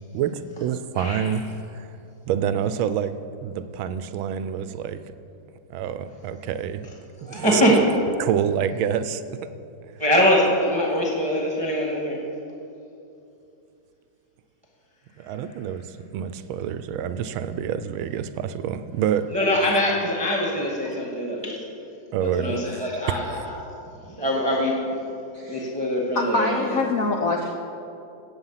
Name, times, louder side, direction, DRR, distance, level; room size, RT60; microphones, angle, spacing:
voice 1, 0.1-2.0 2.3-5.0 5.7-6.9 7.2-7.8 8.2-9.5 15.2-19.4 22.1-22.6 23.1-23.4, right 9 dB, 85° right, 1.4 m, -27 dB
voice 2, 1.0-1.3 7.3-7.8 10.0-12.2 19.3-21.6 22.2-23.6 24.2-25.0 25.5-26.8, equal, 15° right, 1.3 m, -23 dB
voice 3, 25.3-25.7 26.1-27.5, left 3 dB, 55° left, 1.0 m, -25 dB
17.0 x 7.7 x 5.7 m
omnidirectional pair, 2.2 m